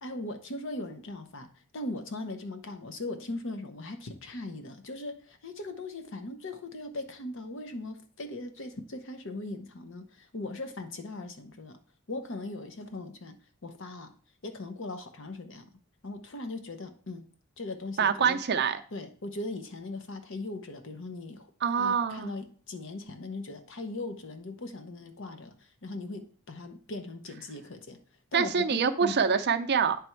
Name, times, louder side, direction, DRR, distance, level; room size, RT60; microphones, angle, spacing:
voice 1, 0.0-11.8 12.1-13.4 13.6-14.1 14.4-15.7 16.0-17.2 17.6-18.4 18.9-21.5 21.8-28.0 28.3-29.2, left 2 dB, 65° left, 0.9 m, -39 dB
voice 2, 18.0-18.8 21.6-22.3 28.3-30.0, right 6 dB, 55° right, 0.5 m, -25 dB
9.2 x 3.4 x 4.4 m
head